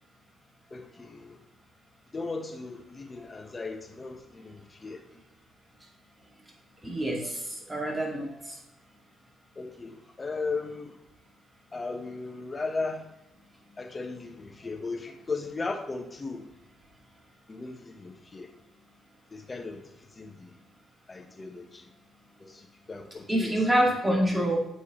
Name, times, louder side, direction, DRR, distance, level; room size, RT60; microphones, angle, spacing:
voice 1, 0.7-1.4 2.1-5.1 9.6-11.0 11.7-13.1 13.8-16.5 17.5-18.5 19.3-20.5 21.1-21.9 22.4-23.6, left 3 dB, 30° left, 1.0 m, -37 dB
voice 2, 6.8-8.6 23.3-24.6, right 1 dB, 15° right, 2.1 m, -27 dB
8.1 x 5.7 x 3.0 m
cardioid pair, 90°, 0 cm